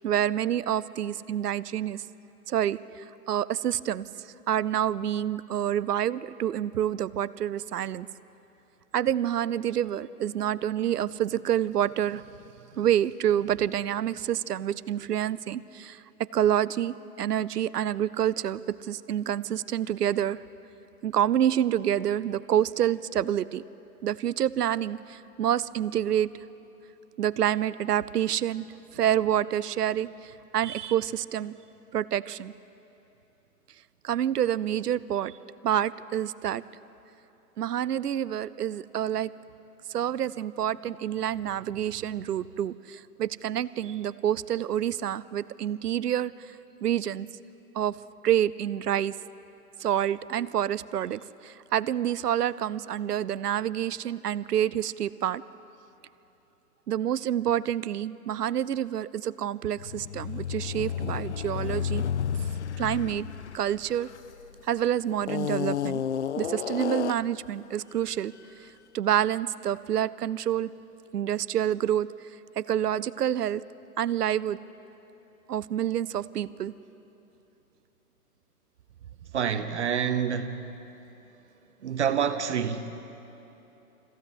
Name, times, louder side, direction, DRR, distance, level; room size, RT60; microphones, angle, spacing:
voice 1, 0.0-2.0 2.5-4.1 4.5-8.1 8.9-12.2 12.7-20.4 21.0-23.6 24.0-26.3 27.2-28.7 28.9-31.5 31.9-32.5 34.0-35.3 35.6-36.6 37.6-39.3 39.9-46.5 46.8-47.3 47.7-48.0 48.2-49.2 49.8-55.4 56.9-62.0 62.8-63.3 63.5-64.1 64.7-66.0 66.4-68.3 68.9-70.7 71.1-72.1 72.6-73.6 74.0-74.6 75.5-76.7, right 10 dB, 85° right, 18 dB, 0.7 m, -27 dB
sound 1, 59.8-64.6 65.2-67.4, left 8 dB, 50° left, 0.5 m, -32 dB
voice 2, 79.3-80.6 81.8-83.0, right 7 dB, 45° right, 9 dB, 1.0 m, -27 dB
23.0 x 16.0 x 8.2 m, 3.0 s
hypercardioid pair, 160°, 46 cm